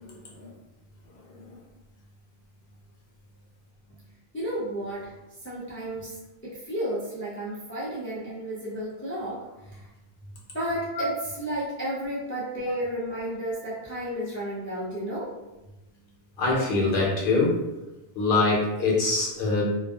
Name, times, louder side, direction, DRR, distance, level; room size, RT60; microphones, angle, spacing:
voice 1, 4.3-5.1 5.4-9.4 9.7-9.8 10.5-15.3, equal, 20° left, -8 dB, 0.3 m, -32 dB
voice 2, 16.4-17.6 18.2-19.6, left 3 dB, 60° left, -4 dB, 0.9 m, -23 dB
2.4 x 2.3 x 2.3 m, 1.0 s
omnidirectional pair, 1.1 m